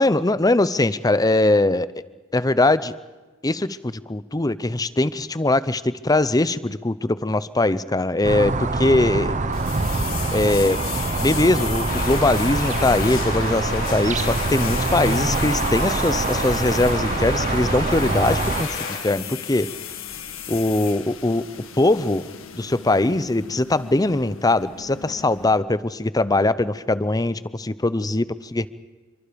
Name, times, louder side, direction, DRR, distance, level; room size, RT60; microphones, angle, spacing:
voice 1, 0.0-1.9 2.3-2.9 3.4-9.3 10.3-10.8 11.2-19.7 20.5-21.4 21.7-22.3 22.5-28.7, left 2 dB, 20° left, 16 dB, 0.7 m, -21 dB
sound 1, 8.2-18.6, right 2 dB, 35° right, 1.0 m, -24 dB
sound 2, 9.5-25.6, left 9 dB, 80° left, 1.6 m, -36 dB
sound 3, 11.9-19.0, left 3 dB, 45° left, 4.2 m, -31 dB
27.5 x 24.5 x 5.2 m, 1.2 s
head